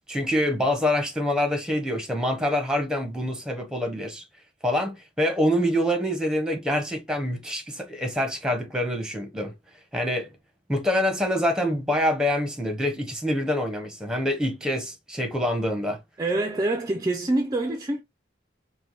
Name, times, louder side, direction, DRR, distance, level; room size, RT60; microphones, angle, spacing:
voice 1, 0.1-4.2 4.6-9.5 9.9-10.3 10.7-16.0, left 1 dB, 5° right, 0.8 m, -26 dB
voice 2, 16.2-18.0, right 2 dB, 20° right, 0.4 m, -25 dB
5.0 x 2.1 x 2.9 m
head